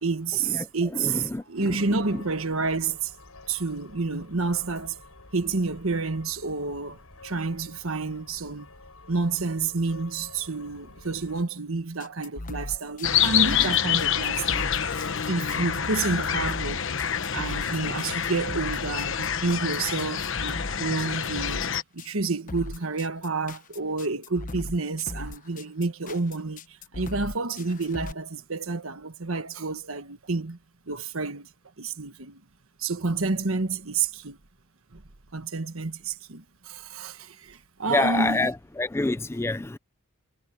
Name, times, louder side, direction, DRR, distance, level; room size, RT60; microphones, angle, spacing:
voice 1, 0.0-3.1 3.5-5.0 5.3-7.0 7.2-8.7 9.1-14.6 14.9-17.0 17.3-21.6 21.9-30.6 30.9-31.5 31.8-32.4 32.8-34.4 34.9-35.0 35.3-38.5, right 3 dB, 65° right, 1.4 m, -29 dB
voice 2, 0.9-2.2 37.9-39.8, left 2 dB, 10° left, 0.4 m, -28 dB
sound 1, 1.8-11.4, left 2 dB, 85° left, 6.1 m, -49 dB
sound 2, 12.0-28.1, left 2 dB, 40° left, 1.0 m, -38 dB
sound 3, 13.0-21.8, left 8 dB, 60° left, 1.2 m, -27 dB
head